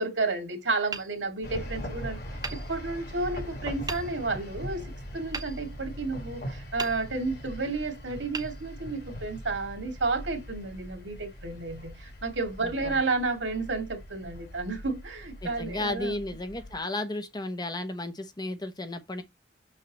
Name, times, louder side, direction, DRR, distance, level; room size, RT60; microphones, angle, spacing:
voice 1, 0.0-2.2 2.5-4.8 5.1-16.2, right 3 dB, 85° right, 2.2 m, -31 dB
Hammer, 0.9-1.9 2.4-3.3 3.9-4.5 5.3-6.3 6.8-7.5 8.3-9.3, right 4 dB, 20° right, 1.0 m, -40 dB
sound 1, 1.4-16.8, equal, 60° left, 2.5 m, -41 dB
voice 2, 12.6-13.0 15.4-19.2, left 2 dB, 25° left, 0.8 m, -34 dB
6.5 x 6.3 x 3.0 m
head